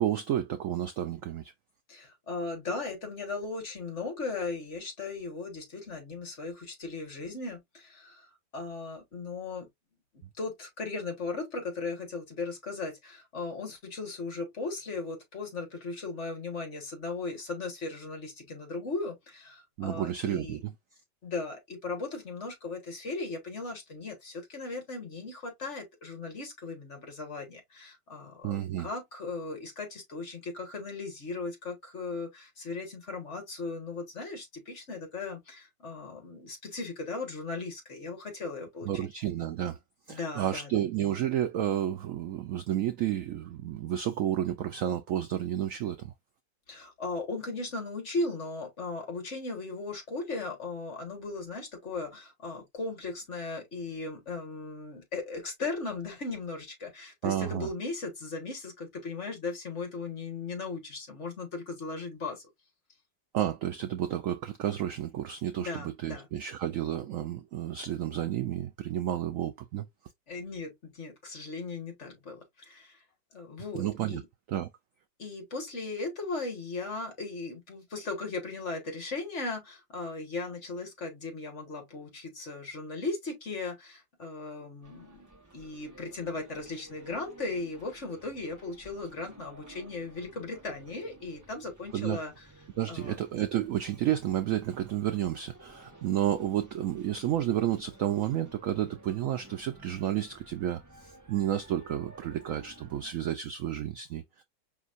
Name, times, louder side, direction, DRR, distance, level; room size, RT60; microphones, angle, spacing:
voice 1, 0.0-1.5 19.8-20.7 28.4-28.9 38.9-39.8 40.1-46.1 57.2-57.7 63.3-69.9 73.7-74.2 74.5-74.7 91.9-92.2 92.8-104.4, right 11 dB, 80° right, 0.7 m, -31 dB
voice 2, 1.9-8.2 8.5-9.7 10.4-20.6 21.2-39.1 40.1-40.7 46.7-62.5 65.6-66.3 70.3-73.0 73.3-74.2 75.2-85.3 85.5-92.4 92.9-93.2, left 3 dB, 40° left, 1.7 m, -37 dB
sound 1, 84.8-103.1, right 2 dB, 15° right, 0.8 m, -54 dB
5.2 x 3.5 x 2.5 m
omnidirectional pair, 2.0 m